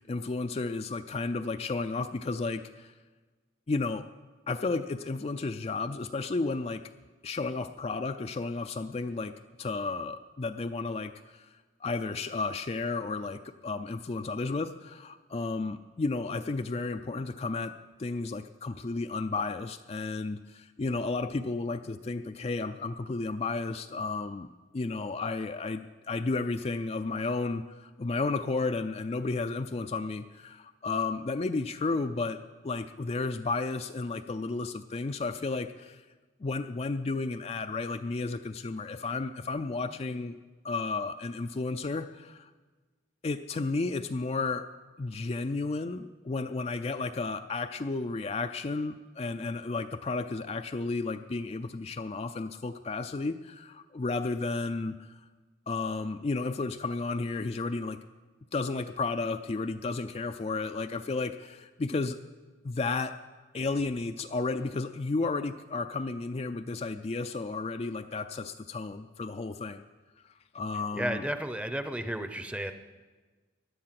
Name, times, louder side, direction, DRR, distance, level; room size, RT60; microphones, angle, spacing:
voice 1, 0.0-2.9 3.7-4.1 4.5-6.8 7.2-11.5 11.8-17.7 18.0-24.5 24.7-36.0 36.4-40.4 40.6-42.5 43.2-44.7 45.0-55.2 55.7-58.0 58.5-62.2 62.6-63.2 63.5-69.9 70.5-71.2, left 3 dB, 35° left, 8 dB, 0.4 m, -33 dB
voice 2, 71.0-72.7, right 1 dB, 5° right, 9 dB, 0.7 m, -33 dB
16.5 x 11.0 x 5.9 m, 1.3 s
head